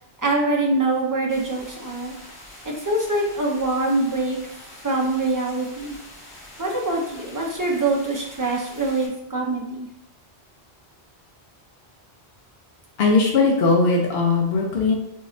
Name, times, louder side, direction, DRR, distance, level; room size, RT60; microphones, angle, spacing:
voice 1, 0.2-2.1 2.6-4.4 4.8-5.9 6.6-9.9, right 2 dB, 25° right, -2 dB, 0.5 m, -24 dB
sound 1, 1.3-9.1, left 1 dB, 20° left, 1.5 m, -44 dB
voice 2, 13.0-14.9, left 3 dB, 65° left, 0 dB, 0.9 m, -19 dB
4.0 x 3.1 x 2.7 m, 0.83 s
omnidirectional pair, 1.1 m